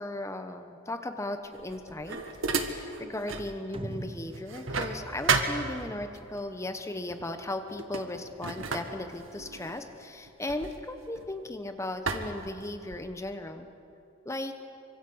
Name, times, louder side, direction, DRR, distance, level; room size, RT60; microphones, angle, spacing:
voice 1, 0.0-2.2 2.6-13.7 14.2-14.7, left 1 dB, 15° left, 7 dB, 1.0 m, -37 dB
sound 1, 1.5-3.5 3.9-6.2 7.1-7.3 7.7-11.5 12.1-13.2, right 4 dB, 75° right, 2.0 m, -33 dB
sound 2, 3.7-6.3, right 1 dB, 25° right, 0.9 m, -42 dB
25.0 x 24.5 x 7.9 m, 2.7 s
head